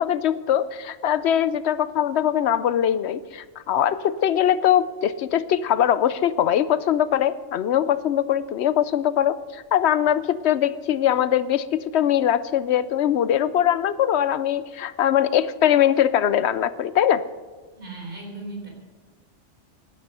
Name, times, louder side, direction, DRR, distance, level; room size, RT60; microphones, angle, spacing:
voice 1, 0.0-17.2, left 10 dB, 70° left, 16 dB, 0.8 m, -21 dB
voice 2, 17.8-18.7, right 2 dB, 45° right, 0 dB, 4.1 m, -36 dB
17.0 x 11.5 x 5.6 m, 1.4 s
omnidirectional pair, 1.2 m